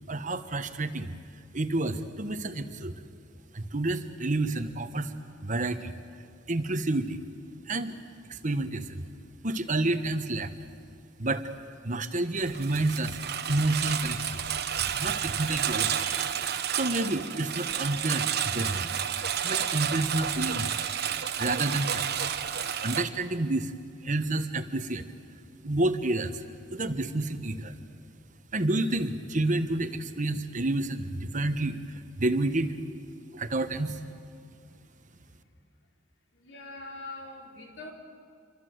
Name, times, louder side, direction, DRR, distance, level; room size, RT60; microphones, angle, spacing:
voice 1, 0.1-1.1 1.5-3.0 3.5-5.1 5.4-6.0 6.5-7.2 7.7-7.9 8.3-9.0 9.4-10.5 11.2-11.5 11.8-13.2 13.5-14.4 15.0-16.4 16.7-18.9 19.4-20.7 21.4-22.3 22.8-23.7 24.0-25.1 25.6-26.4 26.7-27.7 28.5-32.7 33.3-34.0, right 2 dB, 45° right, 9 dB, 1.3 m, -29 dB
Engine, 12.4-23.0, right 8 dB, 60° right, 1.2 m, -31 dB
voice 2, 35.0-35.5 36.3-37.9, left 2 dB, 70° left, 1 dB, 4.1 m, -44 dB
28.0 x 24.5 x 8.0 m, 2.4 s
head